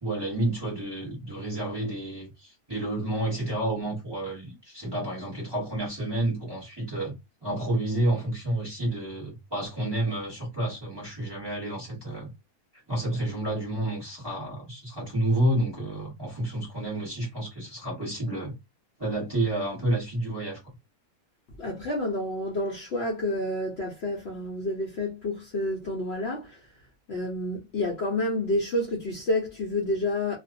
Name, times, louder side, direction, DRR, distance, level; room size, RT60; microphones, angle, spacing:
voice 1, 0.0-7.1 7.4-12.3 12.9-18.5 19.0-20.7, right 1 dB, 20° right, 1.0 m, -30 dB
voice 2, 21.6-26.6 27.1-30.4, left 1 dB, 55° left, 0.8 m, -29 dB
2.5 x 2.1 x 2.5 m
omnidirectional pair, 1.5 m